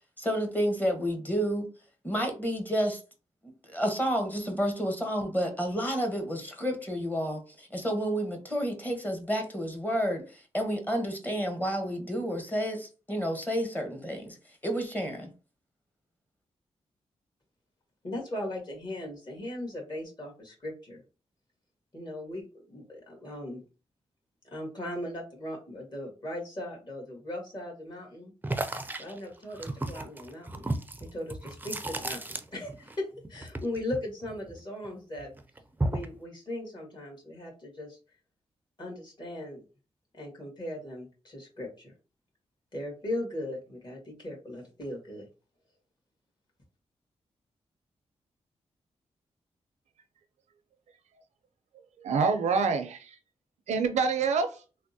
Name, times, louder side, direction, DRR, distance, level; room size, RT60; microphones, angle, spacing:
voice 1, 0.2-1.7 2.0-3.0 3.6-14.4 14.6-15.3, equal, 15° left, 0.9 m, -30 dB
voice 2, 18.0-21.0 21.9-23.6 24.5-28.3 29.0-35.3 35.8-38.0 38.8-39.6 40.1-41.9 42.7-45.3, left 1 dB, 40° left, 1.6 m, -38 dB
sound 1, 28.4-33.0 33.2-34.9 35.2-36.2, right 2 dB, 15° right, 0.4 m, -34 dB
voice 3, 52.0-53.2 53.7-54.6, right 5 dB, 90° right, 0.5 m, -26 dB
3.4 x 2.1 x 2.7 m
cardioid pair, 70°, 11 cm